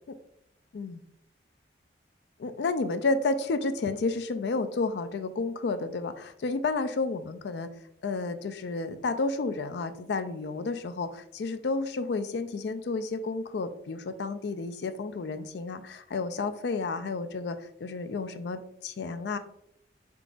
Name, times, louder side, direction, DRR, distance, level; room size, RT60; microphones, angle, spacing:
voice 1, 2.4-7.7 8.0-19.4, left 3 dB, 65° left, 10 dB, 0.4 m, -31 dB
4.7 x 3.7 x 2.4 m, 0.73 s
head